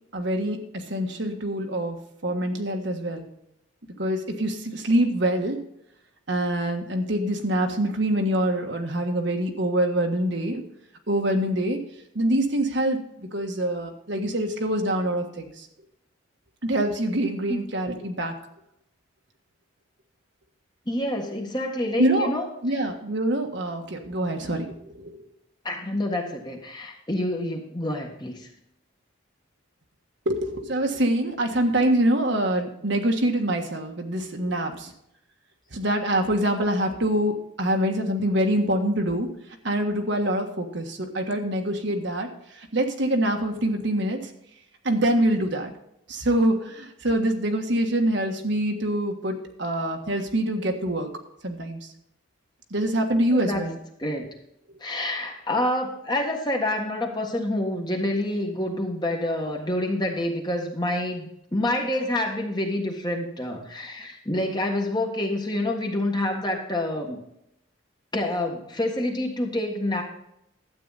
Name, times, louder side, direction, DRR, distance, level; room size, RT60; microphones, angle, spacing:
voice 1, 0.1-2.0 2.2-3.3 4.0-5.6 6.3-10.6 11.1-11.8 12.1-15.7 16.6-18.3 22.0-22.3 22.6-25.2 30.2-34.9 35.7-39.3 39.6-44.2 44.8-45.7 46.1-51.1 51.4-51.8 52.7-53.8, right 1 dB, 55° right, 3 dB, 1.5 m, -25 dB
voice 2, 20.9-22.8 25.6-28.5 53.3-53.6 54.0-54.3 54.8-61.2 61.5-67.2 68.1-70.0, left 1 dB, 20° left, 2 dB, 1.6 m, -27 dB
12.5 x 8.7 x 4.1 m, 0.78 s
head